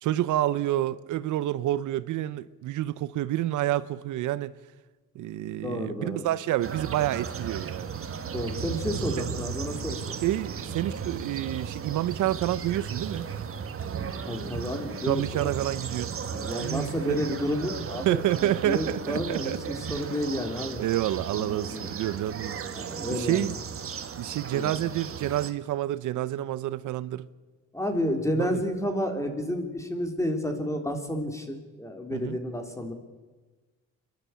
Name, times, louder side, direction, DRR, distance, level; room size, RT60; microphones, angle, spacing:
voice 1, 0.0-4.5 5.1-7.9 10.2-13.3 15.1-16.1 16.6-17.2 18.0-19.8 20.8-22.6 23.1-23.6 24.2-27.3 28.4-28.5 32.1-32.4, right 13 dB, 80° right, 0.8 m, -28 dB
voice 2, 5.6-6.3 8.3-10.2 14.0-15.6 16.3-20.8 21.4-21.9 22.7-23.5 24.5-24.8 27.7-32.9, equal, 10° left, 3.5 m, -31 dB
sound 1, 6.6-25.5, right 7 dB, 45° right, 1.7 m, -35 dB
28.5 x 12.0 x 8.4 m
cardioid pair, 90°, 30 cm